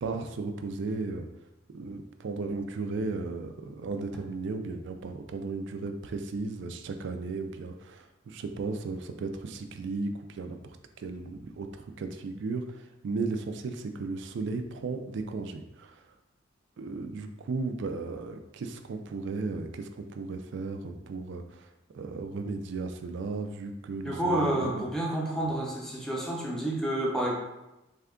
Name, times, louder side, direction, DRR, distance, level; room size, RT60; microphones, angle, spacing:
voice 1, 0.0-1.3 1.7-16.0 16.8-21.6 21.9-24.9, right 3 dB, 65° right, 6 dB, 0.4 m, -35 dB
voice 2, 24.0-27.3, right 1 dB, 5° left, -3 dB, 0.6 m, -29 dB
3.5 x 2.2 x 3.6 m, 0.96 s
head